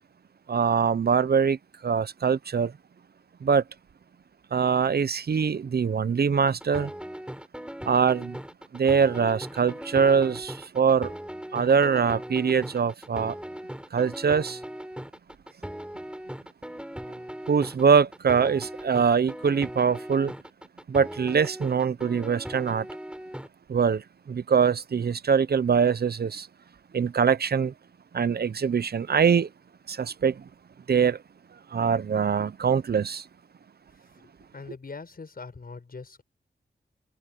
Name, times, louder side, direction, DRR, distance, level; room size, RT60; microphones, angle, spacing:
voice 1, 0.5-2.7 3.4-3.6 4.5-6.9 7.9-8.4 8.7-11.1 11.5-13.4 13.9-14.6 17.5-20.3 20.9-22.9 23.7-26.5 26.9-27.7 28.1-29.5 29.9-30.4 30.9-31.2 31.7-33.2, right 6 dB, 65° right, 0.8 m, -23 dB
sound 1, 6.4-23.5, equal, 5° right, 5.0 m, -39 dB
voice 2, 34.5-36.2, left 4 dB, 55° left, 6.8 m, -41 dB
cardioid pair, 50°, 18 cm